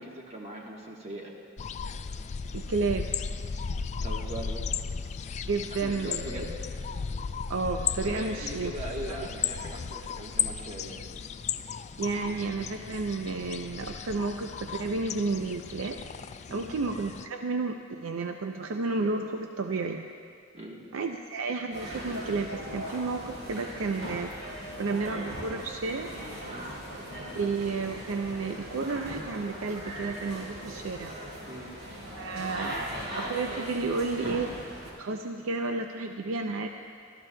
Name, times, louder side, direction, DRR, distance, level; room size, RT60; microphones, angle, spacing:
voice 1, 0.0-1.3 4.0-4.6 5.8-6.6 8.0-11.1 16.5-16.7 20.5-20.9 26.5-26.8 31.4-31.7, right 1 dB, 35° right, -2 dB, 1.2 m, -40 dB
sound 1, 1.6-17.3, left 6 dB, 35° left, 0.3 m, -35 dB
voice 2, 2.5-3.1 5.5-6.4 7.5-8.7 9.1-9.2 12.0-16.0 16.5-20.1 20.9-24.3 24.8-26.1 27.3-31.1 32.1-32.9 33.1-34.6 35.0-36.7, right 3 dB, 90° right, 4 dB, 0.5 m, -31 dB
sound 2, 21.7-34.9, right 1 dB, 70° right, 3.8 m, -39 dB
25.5 x 13.5 x 2.2 m, 2.3 s
head